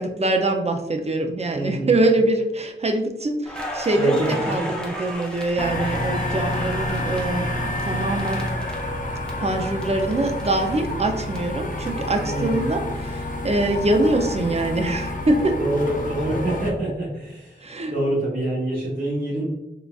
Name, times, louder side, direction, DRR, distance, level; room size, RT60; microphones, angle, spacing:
voice 1, 0.0-8.4 9.4-15.6 17.6-17.9, right 2 dB, 35° right, 4 dB, 0.4 m, -23 dB
voice 2, 1.5-2.0 3.9-4.7 12.2-12.6 15.5-19.4, right 1 dB, 50° right, -8 dB, 1.0 m, -26 dB
Crackle, 3.5-9.3 9.6-11.4, left 1 dB, 5° left, 0.7 m, -34 dB
sound 1, 5.6-16.7, left 1 dB, 45° left, 0.5 m, -29 dB
3.7 x 2.4 x 2.3 m, 0.95 s
wide cardioid pair, 80°, 19 cm